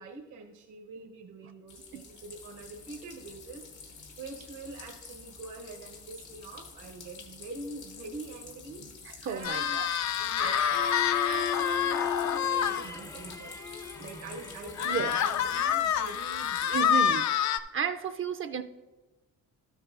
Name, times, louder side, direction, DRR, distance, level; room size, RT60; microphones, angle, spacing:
voice 1, 0.0-9.8 10.2-10.9 11.3-13.6 14.0-16.9, right 3 dB, 80° right, 1 dB, 1.0 m, -45 dB
sound 1, 1.7-16.8, left 5 dB, 85° left, 1.4 m, -49 dB
voice 2, 9.0-9.9 10.4-10.5 14.8-15.2 16.7-17.3 17.7-18.6, right 7 dB, 45° right, 9 dB, 0.4 m, -33 dB
sound 2, 9.4-12.8 13.3-13.4 13.7-13.8 14.8-17.6, left 8 dB, 65° left, 0.5 m, -27 dB
Bowed string instrument, 10.7-15.6, left 6 dB, 10° left, 0.4 m, -37 dB
12.5 x 7.2 x 2.5 m, 1.1 s
cardioid pair, 90°, 30 cm